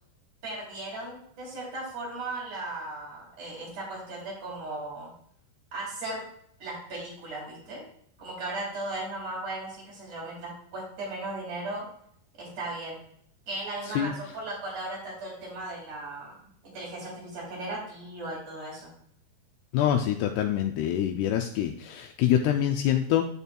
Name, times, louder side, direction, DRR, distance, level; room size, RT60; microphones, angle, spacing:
voice 1, 0.4-5.1 5.7-6.2 6.6-7.8 8.2-11.9 12.3-13.0 13.5-18.9, right 2 dB, 45° right, -5 dB, 4.2 m, -37 dB
voice 2, 19.7-23.3, left 10 dB, 80° left, 5 dB, 2.4 m, -25 dB
15.0 x 5.4 x 2.3 m, 0.68 s
omnidirectional pair, 5.0 m